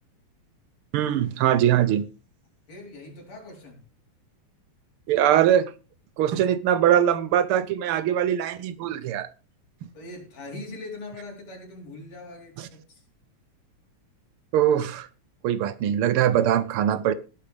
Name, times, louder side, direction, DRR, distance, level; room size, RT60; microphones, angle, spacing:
voice 1, 0.9-2.0 5.1-5.7 6.2-9.3 12.6-12.7 14.5-15.1 15.4-17.1, right 10 dB, 90° right, 1.2 m, -22 dB
voice 2, 2.7-3.8 8.8-8.9 9.9-13.0, left 2 dB, 65° left, 5.3 m, -41 dB
18.0 x 9.1 x 3.4 m
omnidirectional pair, 3.3 m